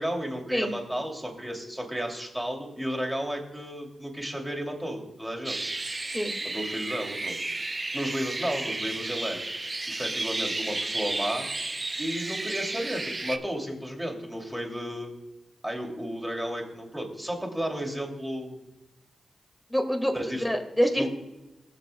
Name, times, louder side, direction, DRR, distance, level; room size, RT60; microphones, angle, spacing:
voice 1, 0.0-5.6 6.4-7.4 7.9-9.4 9.9-11.5 12.0-15.1 15.6-18.6 20.1-20.4 21.0-21.1, equal, 10° right, 0 dB, 2.7 m, -33 dB
sound 1, 5.4-13.4, right 2 dB, 35° right, 0.6 m, -32 dB
voice 2, 6.1-6.4 19.7-20.1 20.4-21.1, equal, 5° left, 5 dB, 1.9 m, -26 dB
21.0 x 7.0 x 2.3 m, 1.0 s
supercardioid pair, 45°, 0 cm